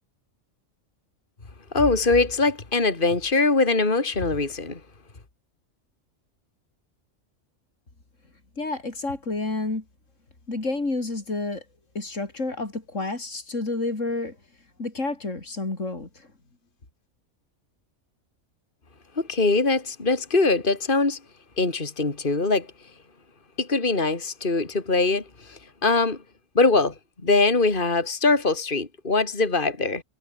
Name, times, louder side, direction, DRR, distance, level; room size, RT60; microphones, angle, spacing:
voice 1, 1.7-4.8 19.2-21.2 21.6-22.7 23.6-26.2 26.5-26.9 27.2-30.0, left 3 dB, 40° left, 2.9 m, -22 dB
voice 2, 8.6-9.8 10.5-11.6 11.9-14.4 14.8-16.1, left 3 dB, 75° left, 4.2 m, -29 dB
omnidirectional pair, 1.3 m